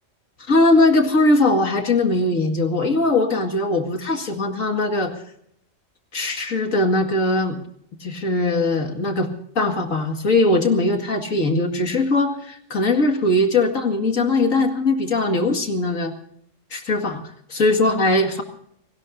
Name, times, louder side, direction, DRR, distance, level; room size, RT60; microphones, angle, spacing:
voice 1, 0.5-5.1 6.1-7.6 8.0-9.3 9.6-16.1 16.7-17.2 17.5-18.4, left 2 dB, 85° left, 4 dB, 2.6 m, -20 dB
30.0 x 17.5 x 2.7 m, 0.70 s
omnidirectional pair, 1.3 m